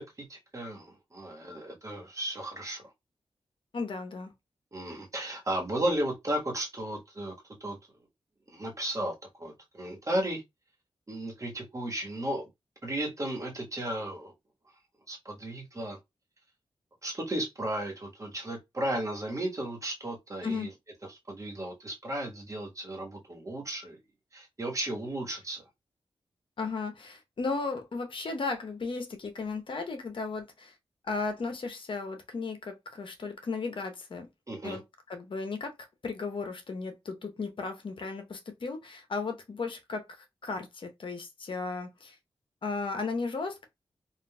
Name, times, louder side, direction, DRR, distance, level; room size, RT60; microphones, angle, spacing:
voice 1, 0.0-2.8 4.7-7.8 8.5-10.4 11.1-12.5 12.8-14.3 15.1-16.0 17.0-20.7 21.3-24.0 24.3-25.6 34.5-34.8, right 1 dB, 35° right, 1.3 m, -34 dB
voice 2, 3.7-4.3 20.4-20.7 26.6-30.7 31.0-34.3 34.6-34.8 35.1-35.7 36.0-42.2 42.6-43.7, left 4 dB, 60° left, 0.9 m, -35 dB
3.8 x 2.5 x 2.2 m
cardioid pair, 70°, 10 cm